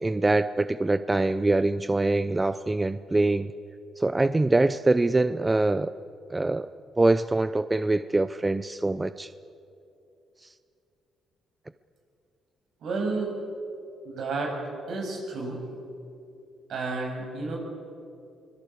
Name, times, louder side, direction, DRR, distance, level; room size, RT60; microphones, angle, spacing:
voice 1, 0.0-3.5 4.0-5.9 6.3-6.7 7.0-9.3 10.4-10.5, right 2 dB, 15° right, 13 dB, 0.6 m, -24 dB
voice 2, 12.8-13.4 14.0-14.6 14.9-15.6 16.7-17.6, right 3 dB, 70° right, 1 dB, 7.1 m, -31 dB
24.0 x 21.5 x 8.4 m, 2.7 s
cardioid pair, 90°, 0 cm